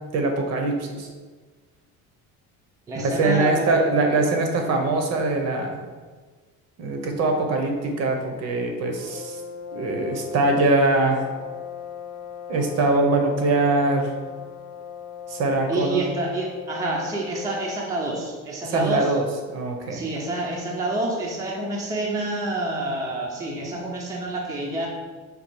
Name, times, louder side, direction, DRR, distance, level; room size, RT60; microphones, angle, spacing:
voice 1, 0.1-1.1 2.9-5.8 6.8-9.4 9.7-11.2 12.5-14.1 15.3-16.1 18.6-20.1, right 2 dB, 50° right, 3 dB, 0.7 m, -23 dB
voice 2, 2.9-3.9 15.7-19.1 19.9-24.9, right 2 dB, 10° right, -3 dB, 0.5 m, -28 dB
sound 1, 8.9-17.9, left 7 dB, 50° left, 0.6 m, -38 dB
5.2 x 2.3 x 4.4 m, 1.4 s
cardioid pair, 160°, 34 cm